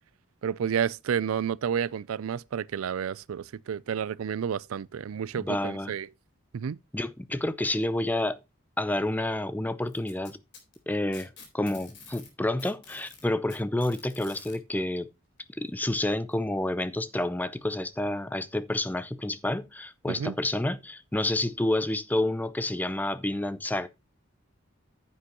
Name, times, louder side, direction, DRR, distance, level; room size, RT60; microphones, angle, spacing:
voice 1, 0.4-6.1 6.5-6.8 20.1-20.4, right 8 dB, 80° right, 0.4 m, -30 dB
voice 2, 5.4-5.9 6.9-8.4 8.8-10.4 10.9-15.1 15.6-23.9, left 1 dB, 10° left, 0.5 m, -29 dB
Packing tape duct tape, 9.9-12.3 12.6-14.6 15.7-15.8 16.3-16.4 17.3-17.4, left 5 dB, 55° left, 3.7 m, -49 dB
9.7 x 8.4 x 3.0 m
head